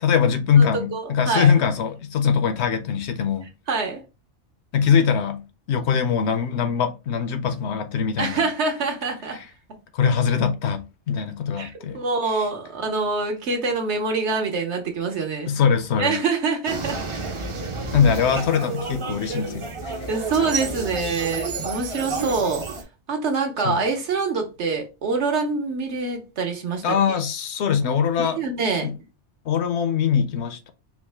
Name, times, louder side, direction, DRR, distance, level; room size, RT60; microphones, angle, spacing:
voice 1, 0.0-3.5 4.7-8.5 9.9-12.0 15.5-16.2 17.9-20.1 23.6-23.8 26.8-28.4 28.8-28.9 29.5-30.7, left 7 dB, 75° left, 0.9 m, -22 dB
voice 2, 0.6-1.5 3.7-4.0 8.2-9.4 11.6-15.5 16.0-17.0 20.1-22.7 23.1-27.2 28.2-28.9, right 4 dB, 75° right, 1.2 m, -25 dB
sound 1, 16.7-22.8, right 3 dB, 35° right, 0.6 m, -30 dB
4.6 x 2.1 x 3.3 m
omnidirectional pair, 1.2 m